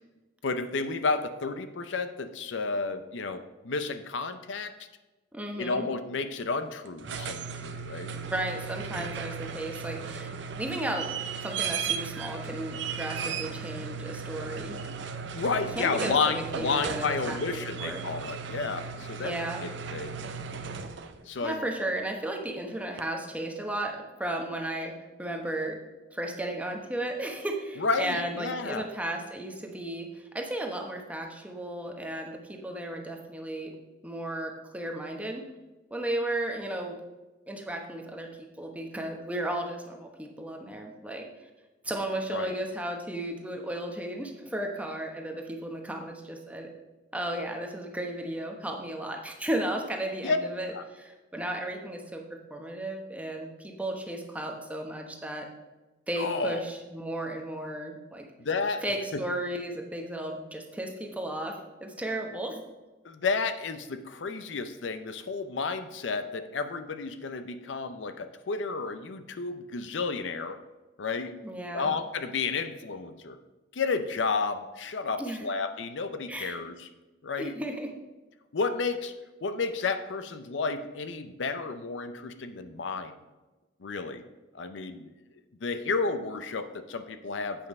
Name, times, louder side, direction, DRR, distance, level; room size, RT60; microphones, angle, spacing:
voice 1, 0.4-4.7 5.6-8.1 15.3-19.3 19.6-20.2 21.3-21.6 27.8-28.9 42.3-42.5 50.2-50.4 50.7-50.8 56.2-56.6 58.4-58.8 63.0-70.6 71.0-71.4 71.7-73.4 73.7-76.9 77.2-77.5 78.5-79.1 79.4-83.1 83.8-84.2 84.5-85.1 85.6-87.7, left 4 dB, 70° left, 9 dB, 0.6 m, -31 dB
voice 2, 5.3-5.9 8.2-10.3 10.6-11.1 11.4-14.8 15.5-18.0 19.2-19.6 21.4-25.8 26.1-33.7 34.0-35.5 35.9-37.0 37.5-38.3 38.6-41.3 41.8-46.7 47.1-52.2 52.5-55.5 56.1-58.3 58.8-62.6 71.4-71.9 75.2-75.4 76.3-76.6 77.4-77.9, right 1 dB, 10° right, 2 dB, 1.0 m, -34 dB
sound 1, 6.9-21.2 23.0-23.1, right 6 dB, 65° right, 0.6 m, -36 dB
8.4 x 5.3 x 5.3 m, 1.1 s
head